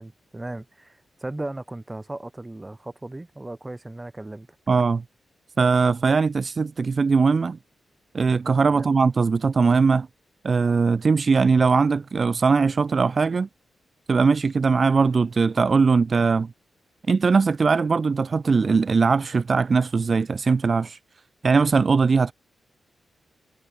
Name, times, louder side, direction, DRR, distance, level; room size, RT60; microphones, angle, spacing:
voice 1, 0.0-4.5 8.7-8.9, right 2 dB, 15° right, 3.5 m, -36 dB
voice 2, 4.7-5.0 5.6-7.6 8.1-10.1 10.4-13.5 14.1-16.5 17.1-21.0 21.4-22.3, right 4 dB, 40° right, 0.4 m, -20 dB
wide cardioid pair, 110°, 0 cm